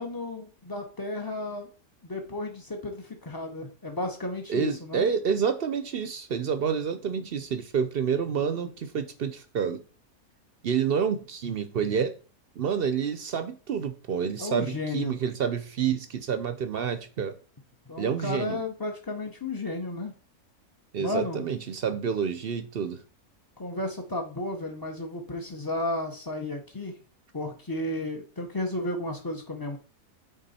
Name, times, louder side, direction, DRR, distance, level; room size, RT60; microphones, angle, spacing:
voice 1, 0.0-1.7 2.0-5.1 14.4-15.1 17.9-20.1 21.0-21.4 23.6-27.0 27.3-29.8, left 2 dB, 25° left, 0.4 m, -33 dB
voice 2, 4.5-9.8 10.6-12.2 12.6-17.3 18.0-18.6 20.9-23.0, right 7 dB, 60° right, 0.6 m, -28 dB
9.0 x 3.9 x 4.2 m
omnidirectional pair, 1.6 m